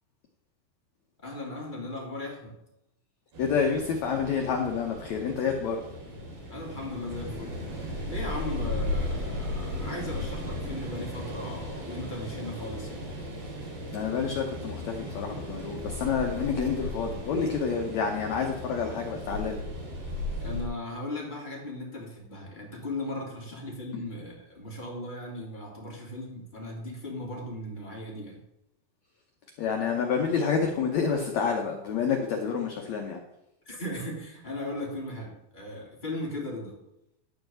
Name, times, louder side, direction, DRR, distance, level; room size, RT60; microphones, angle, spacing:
voice 1, 1.2-2.6 6.5-7.6 7.9-13.1 20.4-28.4 33.6-36.8, left 1 dB, 15° left, -3 dB, 2.4 m, -37 dB
sound 1, 3.3-20.7, left 1 dB, 70° right, 5.0 m, -36 dB
voice 2, 3.4-5.8 13.9-19.6 23.9-24.0 29.6-33.2, left 6 dB, 80° left, 2 dB, 1.6 m, -28 dB
12.0 x 4.8 x 7.7 m, 0.84 s
omnidirectional pair, 4.7 m